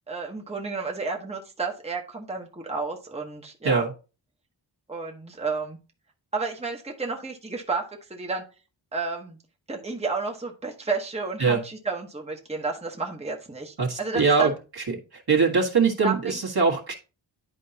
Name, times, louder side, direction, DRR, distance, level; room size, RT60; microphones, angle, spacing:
voice 1, 0.1-3.8 4.9-5.8 6.3-7.8 8.1-8.4 8.9-9.4 9.7-14.5 16.0-16.4, right 4 dB, 15° right, 1 dB, 1.1 m, -31 dB
voice 2, 13.8-14.5 14.9-15.0 15.3-16.9, right 5 dB, 55° right, -2 dB, 1.7 m, -22 dB
11.0 x 4.6 x 2.8 m, 0.32 s
wide cardioid pair, 90°, 46 cm